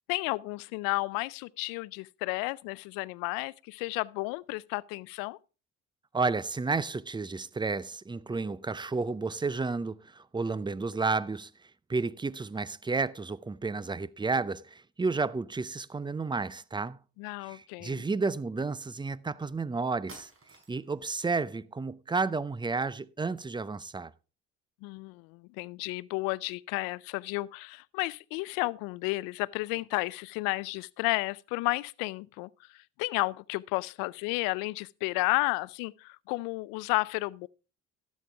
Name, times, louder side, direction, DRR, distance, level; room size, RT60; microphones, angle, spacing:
voice 1, 0.1-5.4 17.2-18.0 24.8-37.5, left 24 dB, 80° left, 0.5 m, -32 dB
voice 2, 6.1-11.5 11.9-17.0 17.4-20.3 20.7-24.1, right 4 dB, 15° right, 0.6 m, -31 dB
sound 1, 20.1-21.0, right 1 dB, 40° right, 5.0 m, -51 dB
12.5 x 8.5 x 3.4 m
hypercardioid pair, 60°, 34 cm